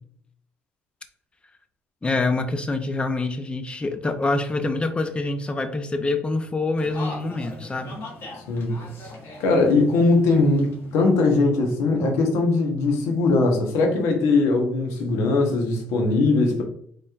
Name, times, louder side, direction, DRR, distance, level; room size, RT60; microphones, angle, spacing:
voice 1, 2.0-8.0, left 2 dB, 25° left, 0.6 m, -26 dB
sound 1, 6.8-11.8, left 2 dB, 55° left, 1.2 m, -40 dB
voice 2, 8.5-8.8 9.4-10.6 10.9-16.6, left 3 dB, 80° left, 0.9 m, -20 dB
4.3 x 3.2 x 2.4 m
supercardioid pair, 80°, 5 cm